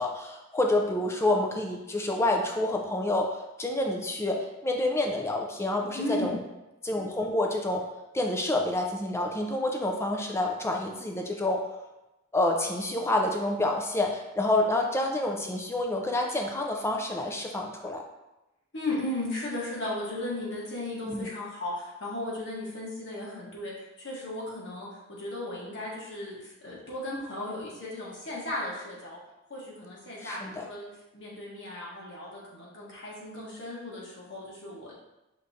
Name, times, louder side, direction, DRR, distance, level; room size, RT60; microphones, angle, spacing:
voice 1, 0.0-6.4 6.8-7.8 8.1-11.6 12.3-18.0 21.1-21.3 30.2-30.7, left 2 dB, 15° left, 2 dB, 0.4 m, -28 dB
voice 2, 5.9-6.4 18.7-29.2 29.5-35.1, left 1 dB, 60° left, -5 dB, 1.3 m, -36 dB
5.2 x 3.5 x 2.8 m, 0.98 s
head